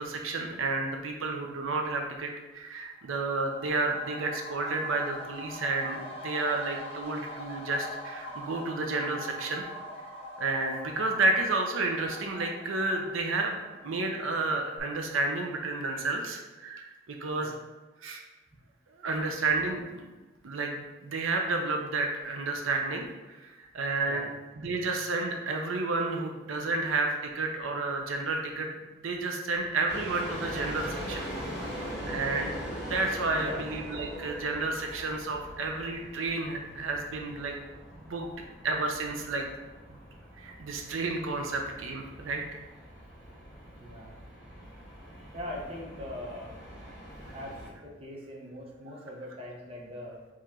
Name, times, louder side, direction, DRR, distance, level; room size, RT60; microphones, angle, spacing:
voice 1, 0.0-9.6 10.4-17.5 18.0-18.2 19.0-20.1 20.4-28.7 29.0-31.3 32.1-32.5 32.8-37.5 38.0-38.3 38.6-39.4 40.4-42.4, right 3 dB, 85° right, 2 dB, 0.5 m, -31 dB
sound 1, 3.0-14.4 14.8-14.9, left 1 dB, 30° left, 0.5 m, -43 dB
sound 2, 29.9-47.7, equal, 5° right, 1.4 m, -42 dB
voice 2, 33.3-33.7 37.3-37.6 43.8-44.2 45.3-46.6 47.2-50.2, left 1 dB, 30° right, -2 dB, 0.7 m, -42 dB
4.6 x 2.9 x 3.6 m, 1.2 s
head